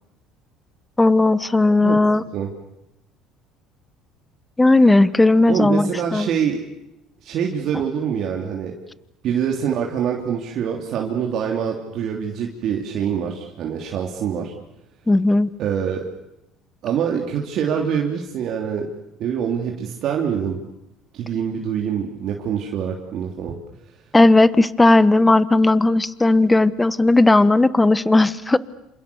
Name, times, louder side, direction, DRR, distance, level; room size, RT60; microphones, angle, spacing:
voice 1, 1.0-2.2 4.6-6.3 15.1-15.5 24.1-28.6, left 2 dB, 10° left, 17 dB, 1.1 m, -16 dB
voice 2, 5.5-6.6 7.2-8.7 9.2-14.5 15.6-16.1 16.8-18.9 19.2-20.6 21.1-23.6, right 8 dB, 60° right, 0 dB, 3.3 m, -25 dB
28.5 x 27.0 x 7.1 m, 0.87 s
supercardioid pair, 105°, 0 cm